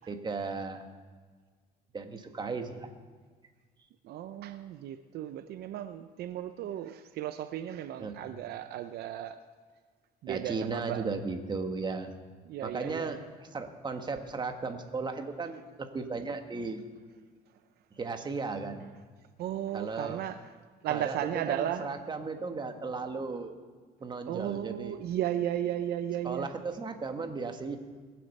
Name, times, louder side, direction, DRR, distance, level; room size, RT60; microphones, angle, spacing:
voice 1, 0.1-0.9 1.9-2.9 8.0-8.4 10.3-12.2 12.6-16.8 18.0-18.9 19.7-20.3 20.9-23.6 24.0-25.0 26.2-27.8, right 4 dB, 25° right, 6 dB, 1.4 m, -36 dB
voice 2, 4.0-9.4 10.2-11.0 12.5-13.2 19.4-20.4 20.8-21.9 24.3-26.5, right 11 dB, 70° right, 10 dB, 0.6 m, -35 dB
21.5 x 7.7 x 5.4 m, 1.5 s
cardioid pair, 110°, 17 cm